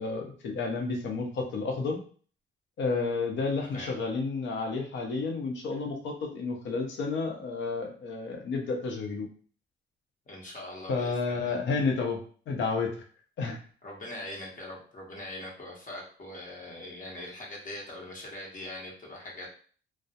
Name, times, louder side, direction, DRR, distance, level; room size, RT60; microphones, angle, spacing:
voice 1, 0.0-2.0 2.8-9.3 10.9-13.0 13.4-13.6, left 4 dB, 70° left, 2 dB, 0.7 m, -31 dB
voice 2, 10.3-11.6 13.8-19.5, left 1 dB, 40° left, -2 dB, 0.9 m, -42 dB
2.2 x 2.0 x 2.7 m, 0.43 s
cardioid pair, 90°, 20 cm